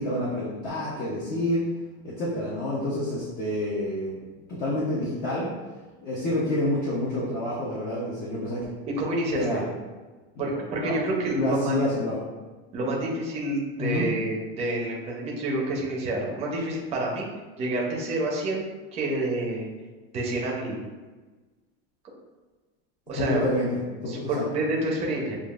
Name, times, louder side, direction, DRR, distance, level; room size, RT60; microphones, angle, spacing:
voice 1, 0.0-1.6 2.0-4.2 4.5-5.5 6.0-8.7 9.3-9.6 10.4-10.9 11.4-12.2 13.8-14.1 23.2-24.4, left 1 dB, 30° left, -7 dB, 0.7 m, -28 dB
voice 2, 8.9-9.6 10.4-11.8 12.7-17.3 17.6-19.7 20.1-20.8 23.1-23.5 24.1-25.4, right 1 dB, 20° right, -2 dB, 0.7 m, -28 dB
7.1 x 2.5 x 2.4 m, 1.3 s
supercardioid pair, 175°, 31 cm